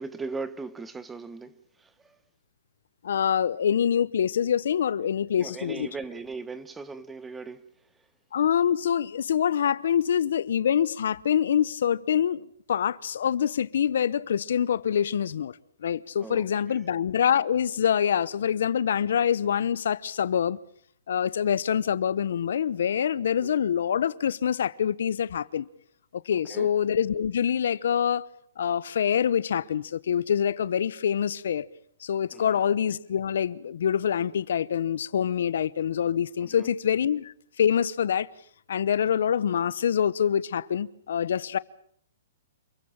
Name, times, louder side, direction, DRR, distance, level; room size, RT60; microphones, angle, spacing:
voice 1, 0.0-2.2 5.4-7.6 16.2-16.8 23.4-23.5 26.3-26.7 32.3-32.6 36.4-36.7, right 4 dB, 10° right, 1.2 m, -39 dB
voice 2, 3.0-5.9 8.3-15.5 15.8-20.6 21.1-25.7 26.2-28.2 28.6-31.7 32.0-38.3 38.7-41.6, left 8 dB, 70° left, 0.9 m, -25 dB
28.0 x 15.5 x 8.7 m
hypercardioid pair, 150°, 0 cm